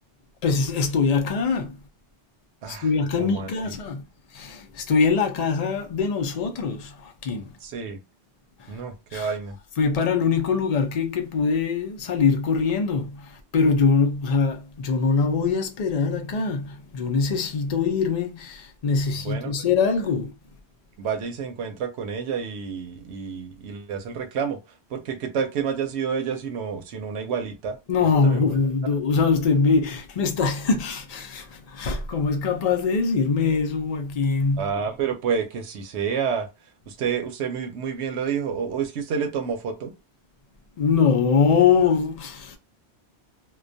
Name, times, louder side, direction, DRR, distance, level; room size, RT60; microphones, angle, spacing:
voice 1, 0.4-1.8 2.7-4.0 4.3-7.5 8.6-8.8 9.1-9.3 9.8-20.3 27.9-34.7 40.8-42.6, left 5 dB, 50° left, 0.5 m, -23 dB
voice 2, 3.2-3.8 7.6-8.0 8.7-9.6 19.2-19.5 21.0-24.6 24.9-27.7 28.0-28.6 34.6-36.5 36.9-39.9, right 6 dB, 80° right, 0.9 m, -29 dB
2.3 x 2.2 x 2.6 m
omnidirectional pair, 1.1 m